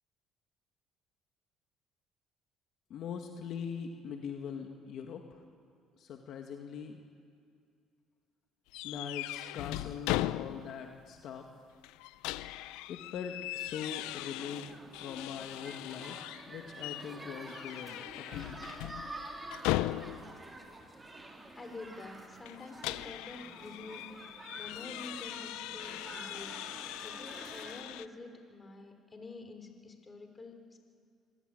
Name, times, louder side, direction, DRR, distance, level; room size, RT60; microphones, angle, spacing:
voice 1, 2.9-5.4 6.0-7.0 8.8-11.5 12.9-16.2 16.5-18.7, left 7 dB, 65° left, 3 dB, 1.8 m, -42 dB
sound 1, 8.7-10.9 11.2-11.3 11.8-16.5 16.8-17.1 17.5-20.4 22.4-28.1, left 16 dB, 90° left, 0.6 m, -39 dB
sound 2, 14.0-27.8, right 2 dB, 20° right, 3.8 m, -49 dB
voice 2, 21.5-24.0 24.6-26.5 27.0-30.8, left 3 dB, 25° left, 5 dB, 3.9 m, -47 dB
25.5 x 17.5 x 9.1 m, 2.3 s
cardioid pair, 95°, 0 cm